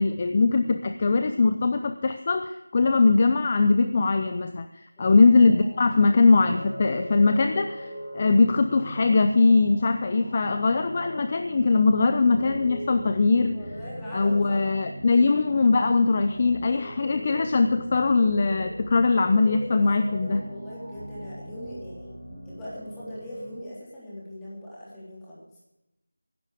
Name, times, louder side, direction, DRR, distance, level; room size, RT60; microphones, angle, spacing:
voice 1, 0.0-13.6 14.1-20.4, left 3 dB, 30° left, 8 dB, 0.6 m, -21 dB
sound 1, 5.0-23.6, equal, 10° right, 3.9 m, -40 dB
voice 2, 13.5-14.6 19.8-22.1 22.4-25.4, equal, 5° left, -9 dB, 3.3 m, -40 dB
16.0 x 11.5 x 4.9 m, 0.92 s
figure-of-eight pair, 170°, 0 cm